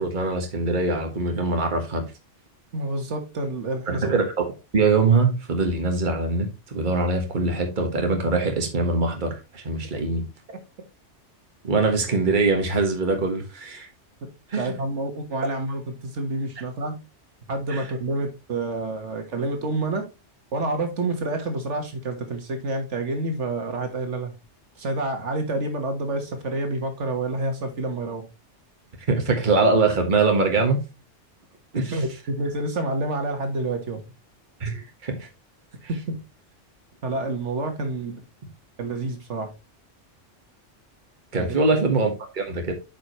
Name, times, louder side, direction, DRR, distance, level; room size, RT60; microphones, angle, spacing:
voice 1, 0.0-2.1 3.9-4.5 4.7-10.2 11.6-13.9 14.5-14.7 17.7-17.8 29.1-30.8 31.7-32.0 34.6-35.3 41.3-42.7, right 3 dB, 40° right, 1.6 m, -23 dB
voice 2, 2.7-4.1 10.5-10.6 14.6-17.0 17.5-20.1 20.5-24.3 24.8-28.2 31.9-34.0 36.1-36.2 37.0-38.2 38.8-39.5 41.4-41.6, right 2 dB, 75° right, 1.7 m, -28 dB
8.8 x 5.2 x 3.0 m
omnidirectional pair, 1.2 m